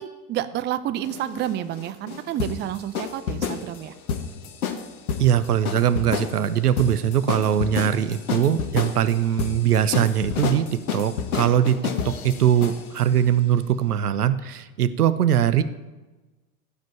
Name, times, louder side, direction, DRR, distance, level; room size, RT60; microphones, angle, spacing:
voice 1, 0.0-3.9, right 12 dB, 25° right, 13 dB, 0.5 m, -29 dB
sound 1, 1.0-13.1, left 7 dB, 65° left, 1.3 m, -30 dB
voice 2, 5.2-11.8 12.0-15.6, right 10 dB, 75° right, 12 dB, 0.8 m, -21 dB
14.5 x 5.2 x 8.7 m, 1.2 s
figure-of-eight pair, 75°, 46 cm